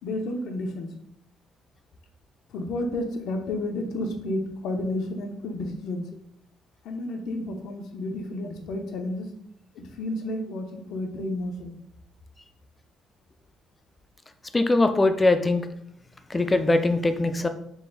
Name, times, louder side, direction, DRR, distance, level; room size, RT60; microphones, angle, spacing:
voice 1, 0.0-0.9 2.5-6.1 6.8-9.3 9.7-11.8, left 1 dB, 70° left, 4 dB, 0.6 m, -31 dB
voice 2, 14.5-15.7 16.3-17.5, left 2 dB, 15° left, 9 dB, 0.3 m, -21 dB
3.9 x 2.5 x 3.9 m, 0.73 s
cardioid pair, 145°, 0 cm